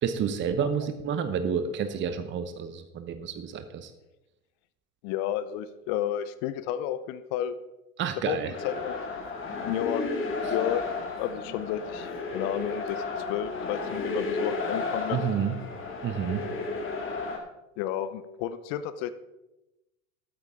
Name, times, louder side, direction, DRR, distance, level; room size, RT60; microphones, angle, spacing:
voice 1, 0.0-3.9 8.0-8.5 15.1-15.6 16.0-16.4, right 7 dB, 25° right, 10 dB, 0.9 m, -29 dB
voice 2, 5.0-7.6 8.3-9.0 9.6-10.1 10.5-10.8 11.2-13.0 13.3-15.3 17.8-19.1, left 11 dB, 45° left, 13 dB, 0.8 m, -32 dB
sound 1, 8.5-17.4, left 3 dB, 30° left, 2.2 m, -33 dB
13.0 x 8.8 x 3.7 m, 0.96 s
hypercardioid pair, 90°, 42 cm